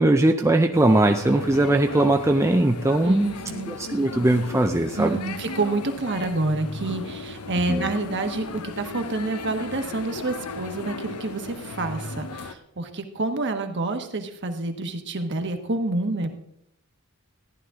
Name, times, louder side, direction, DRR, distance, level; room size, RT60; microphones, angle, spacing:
voice 1, 0.0-3.3 3.7-5.2 7.7-7.9, right 2 dB, 15° right, 4 dB, 0.5 m, -20 dB
sound 1, 0.7-12.5, left 3 dB, 85° left, 0.7 m, -36 dB
voice 2, 3.0-3.7 5.0-16.3, right 2 dB, 55° right, 6 dB, 1.2 m, -28 dB
14.5 x 11.0 x 3.7 m, 0.75 s
head